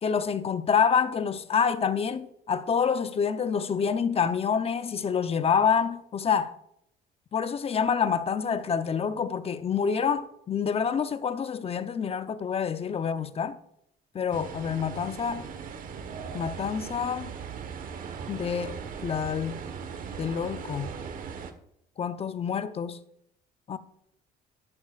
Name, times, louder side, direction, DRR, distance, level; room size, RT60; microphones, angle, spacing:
voice 1, 0.0-6.5 7.3-13.6 14.1-15.5 16.3-17.3 18.3-18.7 19.0-19.6 20.2-20.9 22.0-23.0 23.7-23.8, left 7 dB, 35° left, 0.7 m, -27 dB
sound 1, 14.3-21.5, right 6 dB, 55° right, 1.3 m, -39 dB
13.0 x 11.5 x 2.5 m
cardioid pair, 110°, 17 cm